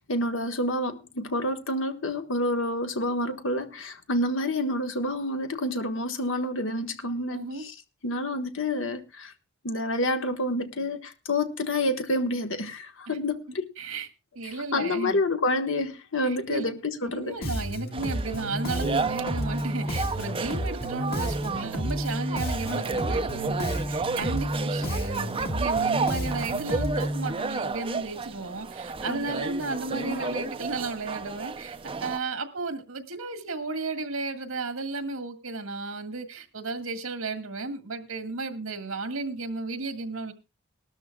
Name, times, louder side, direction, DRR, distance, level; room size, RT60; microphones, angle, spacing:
voice 1, 0.0-7.7 8.0-9.3 9.6-13.7 14.4-17.4 29.1-29.5 29.9-30.3, left 1 dB, 65° left, 1.3 m, -28 dB
voice 2, 7.3-7.6 13.1-13.2 13.8-14.1 14.3-15.2 16.2-16.7 17.0-40.3, right 3 dB, 90° right, 1.7 m, -34 dB
Bass guitar, 17.4-27.3, equal, 50° left, 1.9 m, -31 dB
sound 1, 17.9-32.2, right 4 dB, 25° right, 0.5 m, -32 dB
19.5 x 13.0 x 2.3 m
head